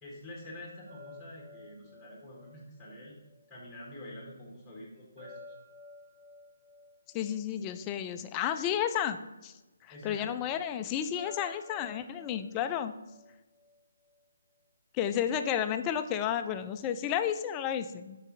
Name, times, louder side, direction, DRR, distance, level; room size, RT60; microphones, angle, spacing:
voice 1, 0.0-3.2 3.5-5.4 9.9-10.3, left 1 dB, 5° left, -4 dB, 1.3 m, -46 dB
sound 1, 0.9-3.9 5.2-8.7 11.1-14.2, left 2 dB, 70° right, 2.0 m, -54 dB
voice 2, 7.1-9.5 9.8-13.0 14.9-18.2, left 9 dB, 20° left, 9 dB, 0.3 m, -32 dB
5.4 x 4.9 x 3.7 m, 1.1 s
figure-of-eight pair, 145°, 0 cm